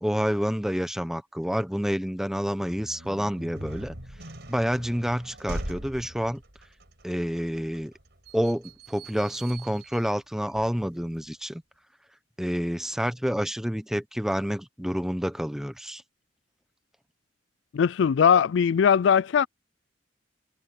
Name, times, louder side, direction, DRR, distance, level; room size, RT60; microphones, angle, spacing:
voice 1, 0.0-3.9 4.5-6.4 7.0-7.9 8.3-11.6 12.4-16.0, equal, 5° right, 0.9 m, -28 dB
sound 1, 2.6-11.3, right 1 dB, 65° right, 6.0 m, -41 dB
voice 2, 17.7-19.5, left 7 dB, 75° left, 0.4 m, -20 dB
head